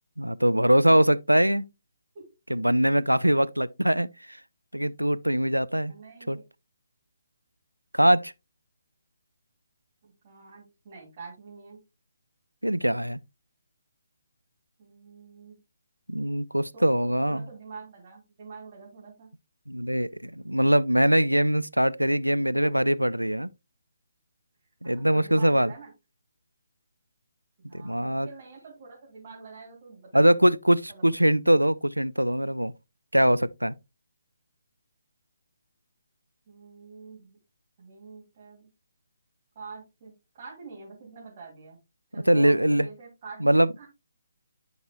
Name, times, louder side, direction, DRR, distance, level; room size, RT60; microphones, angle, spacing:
voice 1, 0.2-1.7 2.5-4.4 4.7-5.9 6.3-6.4 7.9-8.3 12.6-13.2 16.1-17.4 19.7-23.5 24.8-25.7 27.7-28.3 30.1-32.7 33.1-33.7 42.3-42.9 43.4-43.7, right 1 dB, 85° right, 0.4 m, -22 dB
voice 2, 5.9-6.4 10.0-11.8 14.8-15.6 16.7-19.3 22.6-22.7 24.8-25.9 27.6-30.3 30.9-31.1 36.5-37.4 37.8-38.7 39.5-40.1 40.4-41.8 42.1-43.4 43.8-43.9, right 4 dB, 35° right, 2.7 m, -45 dB
10.5 x 4.8 x 2.3 m
figure-of-eight pair, 140°, 0 cm